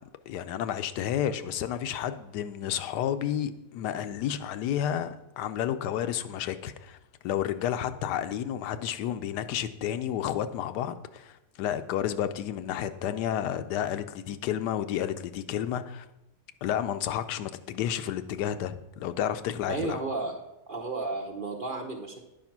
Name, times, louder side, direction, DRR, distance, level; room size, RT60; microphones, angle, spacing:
voice 1, 0.3-7.0 7.2-16.1 16.6-20.0, left 10 dB, 85° left, 1.2 m, -31 dB
voice 2, 19.7-20.4 20.7-22.2, right 3 dB, 40° right, 0.8 m, -33 dB
9.6 x 5.0 x 5.9 m
omnidirectional pair, 1.7 m